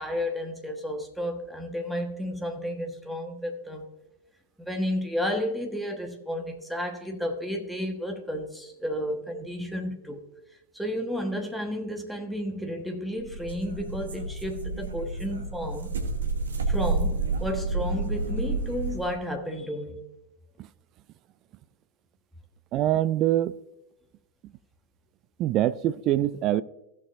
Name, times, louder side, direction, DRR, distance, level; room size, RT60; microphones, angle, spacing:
voice 1, 0.0-3.9 4.6-10.2 10.7-15.9 16.7-20.0, equal, ahead, 1.3 m, -32 dB
sound 1, 13.2-19.1, right 3 dB, 70° right, 1.2 m, -30 dB
voice 2, 22.7-23.6 25.4-26.6, right 13 dB, 35° right, 0.3 m, -24 dB
15.5 x 7.0 x 2.5 m
figure-of-eight pair, 90°, 0 cm